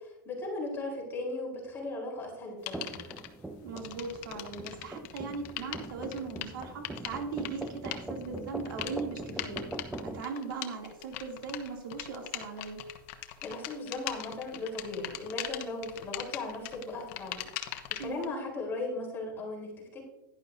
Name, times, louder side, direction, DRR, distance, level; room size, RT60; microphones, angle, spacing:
voice 1, 0.0-3.1 13.4-17.4 17.9-20.0, left 2 dB, 20° left, -2 dB, 4.2 m, -37 dB
sound 1, 2.7-3.3 3.7-18.3, left 13 dB, 45° left, 1.1 m, -41 dB
sound 2, 2.7-10.2, right 1 dB, 5° right, 0.5 m, -42 dB
voice 2, 3.6-9.7 10.0-12.8 18.0-18.4, right 4 dB, 75° right, 1 dB, 2.7 m, -39 dB
11.0 x 11.0 x 2.7 m, 0.94 s
supercardioid pair, 145°, 11 cm